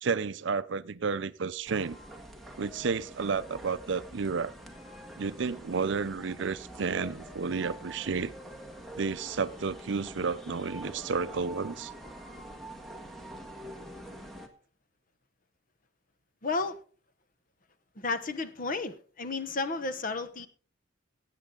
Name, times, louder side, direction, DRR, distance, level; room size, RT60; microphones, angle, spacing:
voice 1, 0.0-2.0 2.6-4.5 5.2-8.3 9.0-11.9, right 5 dB, 60° right, 0.5 m, -31 dB
sound 1, 1.7-14.5, right 1 dB, ahead, 1.5 m, -46 dB
voice 2, 16.4-16.8 18.0-20.5, left 3 dB, 45° left, 1.0 m, -32 dB
17.5 x 8.3 x 3.8 m
head